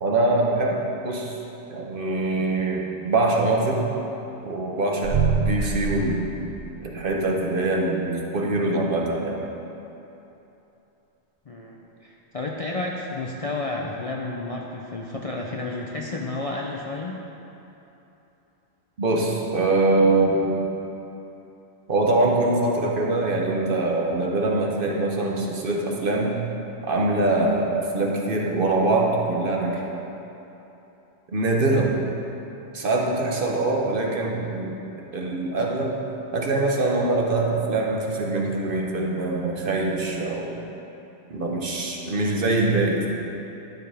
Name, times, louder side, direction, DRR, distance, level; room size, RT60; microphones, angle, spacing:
voice 1, 0.0-1.4 1.7-3.9 4.4-6.4 6.8-9.4 19.0-20.6 21.9-26.4 26.8-29.9 31.3-31.9 32.7-34.8 35.1-36.0 36.3-40.6 41.3-43.1, right 2 dB, 55° right, -1 dB, 1.1 m, -23 dB
sound 1, 5.0-7.3, right 5 dB, 75° right, 0.9 m, -26 dB
voice 2, 11.5-17.2, left 2 dB, 45° left, -2 dB, 0.5 m, -31 dB
12.0 x 6.8 x 3.4 m, 3.0 s
omnidirectional pair, 1.2 m